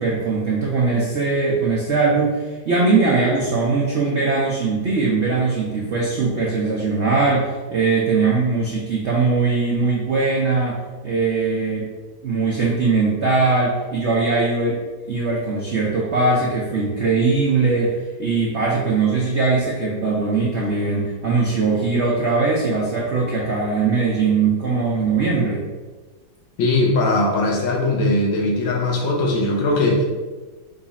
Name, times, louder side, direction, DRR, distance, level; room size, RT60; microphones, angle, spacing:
voice 1, 0.0-10.8 11.0-11.9 12.2-14.8 15.1-25.7, right 4 dB, 85° right, -4 dB, 0.6 m, -20 dB
voice 2, 26.6-30.1, left 2 dB, 85° left, -1 dB, 1.8 m, -19 dB
5.1 x 2.4 x 4.0 m, 1.3 s
omnidirectional pair, 2.2 m